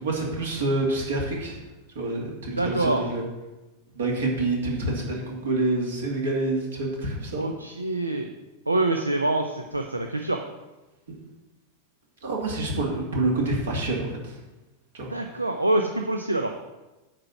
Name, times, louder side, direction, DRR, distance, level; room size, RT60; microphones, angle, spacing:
voice 1, 0.0-1.6 1.9-3.2 3.9-7.5 11.1-11.2 12.2-14.3 14.9-15.1, right 2 dB, 65° right, -1 dB, 2.5 m, -27 dB
voice 2, 2.6-3.0 7.4-8.3 8.7-10.4 15.1-16.5, right 2 dB, 85° right, 5 dB, 0.6 m, -25 dB
9.9 x 4.5 x 7.2 m, 1.1 s
figure-of-eight pair, 90°, 0 cm